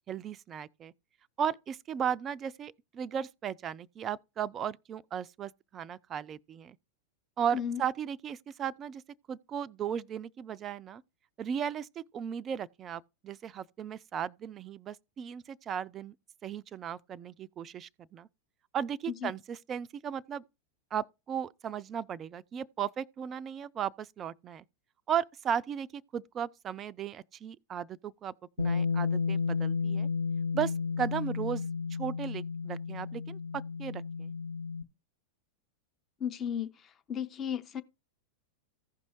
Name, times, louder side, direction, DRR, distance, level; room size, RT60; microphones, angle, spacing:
voice 1, 0.1-0.9 1.4-6.8 7.4-9.0 9.3-11.0 11.4-16.1 16.4-18.3 18.7-20.4 20.9-24.6 25.1-30.1 30.5-31.7 32.0-33.4 33.8-34.3, right 8 dB, 25° right, 0.4 m, -36 dB
Bass guitar, 28.6-34.8, left 5 dB, 75° left, 0.6 m, -32 dB
voice 2, 36.2-36.7 37.1-37.8, left 8 dB, 25° left, 0.7 m, -34 dB
15.0 x 5.3 x 3.0 m
figure-of-eight pair, 90°, 0 cm